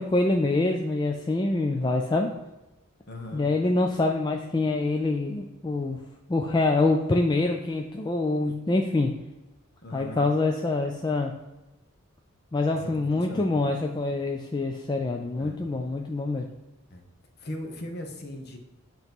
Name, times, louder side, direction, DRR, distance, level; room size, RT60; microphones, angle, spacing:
voice 1, 0.0-2.3 3.3-6.0 6.3-9.1 9.9-11.3 12.5-16.5, left 2 dB, 20° left, 2 dB, 0.3 m, -25 dB
voice 2, 3.1-3.5 9.8-10.3 12.8-13.6 15.4-15.7 16.9-17.0 17.4-18.6, left 1 dB, 45° left, 4 dB, 0.9 m, -39 dB
8.1 x 3.0 x 5.2 m, 1.0 s
head